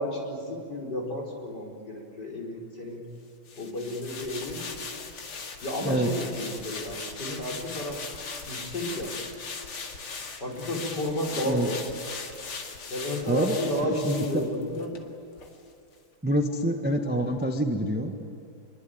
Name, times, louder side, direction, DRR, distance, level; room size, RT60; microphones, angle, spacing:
voice 1, 0.0-3.0 3.6-4.6 5.6-8.0 8.5-9.2 10.4-11.8 12.9-15.0, left 1 dB, 50° left, -1 dB, 5.5 m, -32 dB
sound 1, 3.5-15.0 15.4-15.5, left 4 dB, 90° left, 3.1 m, -39 dB
voice 2, 13.3-14.5 16.2-18.3, right 1 dB, 5° right, 4 dB, 1.1 m, -27 dB
27.5 x 23.0 x 9.3 m, 2.5 s
omnidirectional pair, 2.3 m